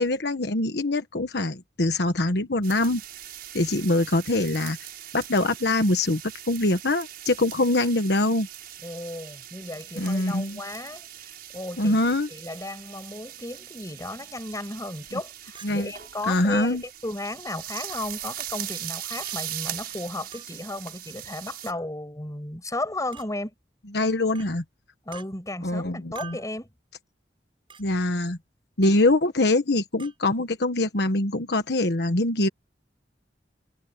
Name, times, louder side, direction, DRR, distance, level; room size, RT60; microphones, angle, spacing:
voice 1, 0.0-3.0 3.5-4.8 5.1-6.2 6.5-8.5 10.0-10.6 11.8-12.3 15.6-15.9 16.3-16.8 23.9-24.6 25.6-26.4 27.8-28.4 28.8-32.5, left 2 dB, 70° left, 1.3 m, -23 dB
sound 1, 2.6-21.7, right 12 dB, 60° right, 7.1 m, -40 dB
voice 2, 8.8-23.5 25.1-26.7, left 1 dB, 20° left, 5.8 m, -35 dB
Chink clink, 15.5-15.7 16.6-16.7 17.9-18.0 19.2-19.4 20.3-20.5 21.7-21.9 23.1-23.3 24.3-24.5 25.1-25.3 26.1-26.5 27.7-27.8 28.8-29.0 30.0-30.2, right 6 dB, 30° right, 7.9 m, -44 dB
head